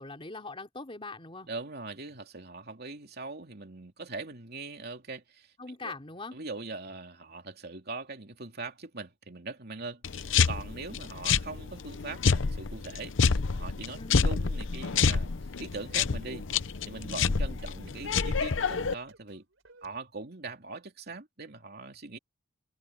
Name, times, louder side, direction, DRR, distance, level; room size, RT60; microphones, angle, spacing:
voice 1, 0.0-1.5 5.6-6.4 14.0-14.2, left 3 dB, 30° left, 3.0 m, -41 dB
voice 2, 1.5-5.5 5.8-5.9 6.3-15.3 15.6-16.5 16.9-19.4 19.8-22.2, right 3 dB, 55° right, 2.9 m, -41 dB
sound 1, 10.0-18.9, left 5 dB, 70° left, 0.7 m, -28 dB
sound 2, 14.8-20.0, right 2 dB, 70° right, 4.8 m, -58 dB
head